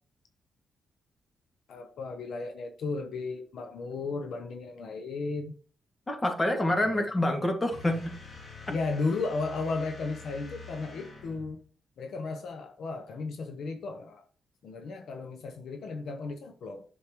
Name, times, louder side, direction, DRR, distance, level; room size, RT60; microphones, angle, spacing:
voice 1, 1.7-5.6 6.8-7.0 8.7-11.6 12.0-14.2 14.6-16.8, left 3 dB, 75° left, 1.0 m, -35 dB
voice 2, 6.1-8.1 8.7-8.8, left 1 dB, 25° left, 2.1 m, -27 dB
sound 1, 7.7-11.6, left 4 dB, 50° left, 3.7 m, -46 dB
8.6 x 6.5 x 3.1 m
cardioid pair, 70°, 0 cm